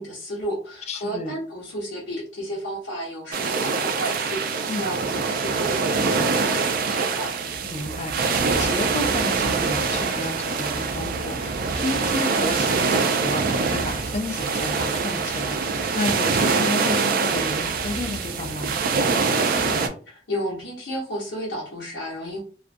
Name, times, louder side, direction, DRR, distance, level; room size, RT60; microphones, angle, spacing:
voice 1, 0.0-7.3 19.5-22.4, equal, 75° left, 0.8 m, -32 dB
voice 2, 0.9-1.3 4.7-4.9 7.6-18.7, left 2 dB, 35° left, 0.4 m, -31 dB
sound 1, 3.3-19.9, right 4 dB, 50° right, 0.3 m, -24 dB
2.4 x 2.2 x 2.5 m
head